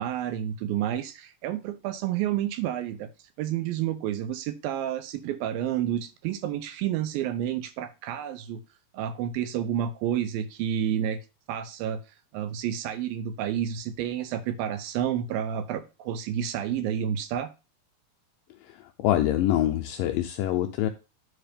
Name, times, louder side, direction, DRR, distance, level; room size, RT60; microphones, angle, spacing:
voice 1, 0.0-3.1 3.4-8.6 8.9-11.2 11.5-12.0 12.3-17.5, right 10 dB, 80° right, 2.3 m, -30 dB
voice 2, 18.7-20.9, left 13 dB, 80° left, 2.0 m, -25 dB
9.6 x 3.4 x 5.0 m
omnidirectional pair, 4.5 m